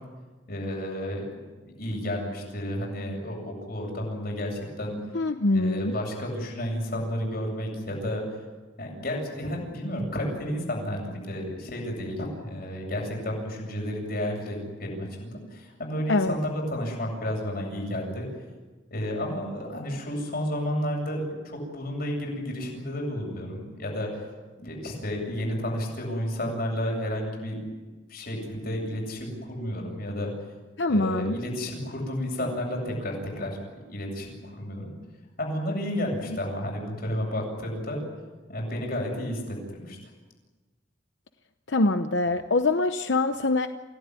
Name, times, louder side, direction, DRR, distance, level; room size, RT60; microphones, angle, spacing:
voice 1, 0.5-5.0 5.5-8.2 8.8-18.3 18.9-24.2 24.6-27.6 28.1-30.3 30.9-33.6 33.9-34.9 35.4-38.0 38.5-40.0, equal, 55° left, 0 dB, 7.8 m, -31 dB
voice 2, 5.1-5.9 16.1-16.3 30.8-31.4 41.7-43.7, left 2 dB, 70° left, 8 dB, 0.9 m, -24 dB
28.0 x 17.0 x 9.7 m, 1.3 s
head